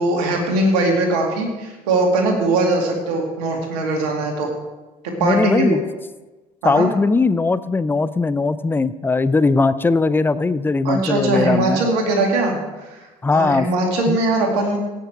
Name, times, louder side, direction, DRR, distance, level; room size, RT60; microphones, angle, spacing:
voice 1, 0.0-4.5 5.2-5.7 6.6-6.9 10.8-12.5 12.8-13.1 13.3-14.8, right 2 dB, 65° right, 1 dB, 2.4 m, -20 dB
voice 2, 5.2-5.8 6.6-11.9 13.2-13.7 14.1-14.2, left 3 dB, 10° left, 15 dB, 0.5 m, -19 dB
16.5 x 6.6 x 4.7 m, 1.2 s
figure-of-eight pair, 60°, 21 cm